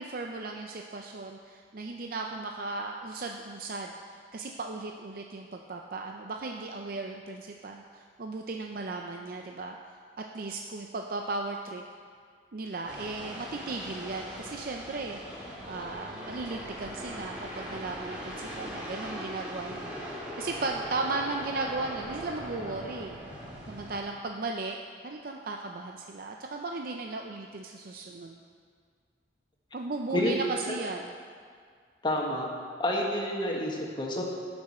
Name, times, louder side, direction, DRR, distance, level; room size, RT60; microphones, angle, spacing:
voice 1, 0.0-9.8 10.2-11.8 12.5-23.2 23.7-24.8 25.0-28.4 29.7-31.1, right 3 dB, 50° right, 2 dB, 0.5 m, -36 dB
sound 1, 12.9-24.0, equal, 10° right, 2.1 m, -40 dB
voice 2, 32.0-32.5 32.8-34.2, left 1 dB, 25° left, -1 dB, 1.4 m, -29 dB
18.5 x 6.1 x 4.3 m, 2.1 s
head